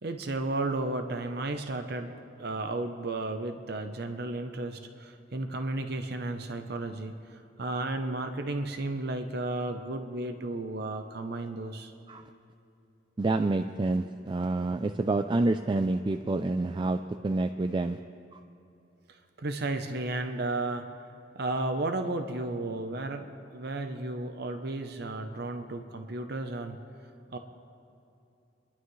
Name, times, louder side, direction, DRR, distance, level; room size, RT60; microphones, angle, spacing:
voice 1, 0.0-7.1 7.6-11.9 19.1-20.9 21.3-23.3 23.5-26.8 27.3-27.4, right 2 dB, 60° right, 7 dB, 0.7 m, -33 dB
voice 2, 13.2-18.0 18.3-18.4, right 2 dB, 25° right, 7 dB, 0.3 m, -28 dB
28.5 x 11.5 x 3.2 m, 2.8 s
head